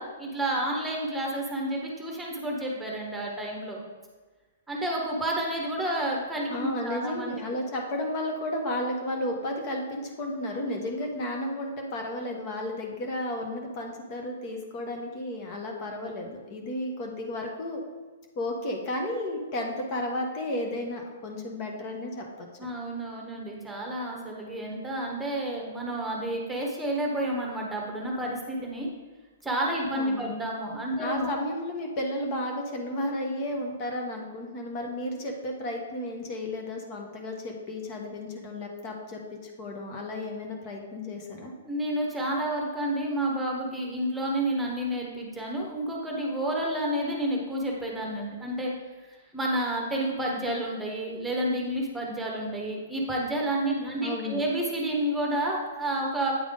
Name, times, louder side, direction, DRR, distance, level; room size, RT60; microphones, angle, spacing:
voice 1, 0.0-3.8 4.7-7.3 22.6-28.9 29.4-31.3 41.6-48.7 49.0-56.3, right 1 dB, 5° right, -1 dB, 1.2 m, -30 dB
voice 2, 6.5-17.8 18.4-22.5 30.0-30.3 31.0-41.5 54.0-54.4, left 1 dB, 40° left, 2 dB, 1.0 m, -33 dB
8.7 x 3.4 x 3.7 m, 1.3 s
hypercardioid pair, 125°, 0 cm